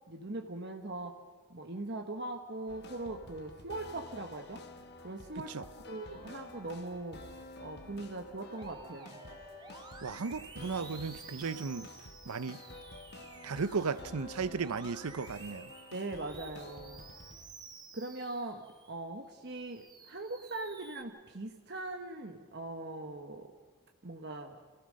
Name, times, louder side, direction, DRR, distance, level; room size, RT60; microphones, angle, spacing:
voice 1, 0.1-1.2 1.5-4.6 5.0-7.2 7.6-9.2 15.9-17.1 17.9-23.5 24.0-24.6, right 2 dB, 50° right, 1.2 m, -41 dB
sound 1, 2.7-17.7, left 2 dB, 50° left, 1.5 m, -50 dB
voice 2, 5.4-5.7 10.0-11.9 12.3-12.6 13.4-15.7, right 5 dB, 85° right, 0.7 m, -35 dB
Musical instrument, 8.6-19.0 19.5-21.0, right 4 dB, 20° right, 1.5 m, -52 dB
29.0 x 16.5 x 6.5 m
head